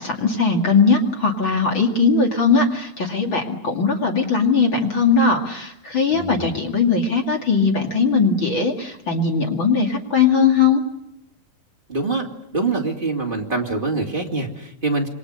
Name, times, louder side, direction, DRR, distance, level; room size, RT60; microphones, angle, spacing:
voice 1, 0.0-10.8, left 4 dB, 35° left, 2 dB, 2.5 m, -19 dB
voice 2, 6.1-6.5 11.9-15.1, right 3 dB, 15° right, 1 dB, 2.3 m, -25 dB
27.5 x 23.5 x 6.6 m, 0.82 s
omnidirectional pair, 4.5 m